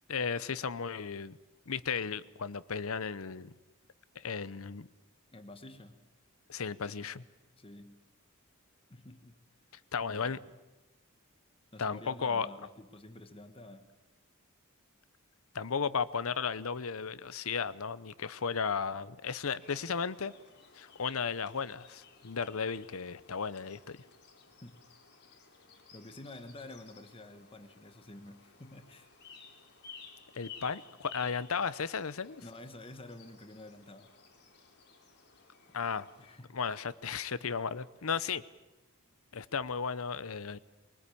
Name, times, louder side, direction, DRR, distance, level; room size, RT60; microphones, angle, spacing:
voice 1, 0.1-1.4 1.7-3.5 4.2-4.9 6.5-7.2 9.9-10.4 11.8-12.5 15.5-20.3 20.8-24.0 30.3-32.4 35.7-36.1 36.5-38.4 39.3-40.6, left 6 dB, 70° left, 16 dB, 0.8 m, -35 dB
voice 2, 5.3-6.0 7.6-8.0 8.9-9.4 10.0-10.6 11.7-13.9 24.6-24.8 25.9-29.1 32.4-34.1 36.2-36.6, left 1 dB, 25° left, 8 dB, 1.3 m, -49 dB
sound 1, 19.6-36.4, left 5 dB, 50° left, 3.3 m, -56 dB
23.5 x 20.0 x 8.6 m, 1.1 s
head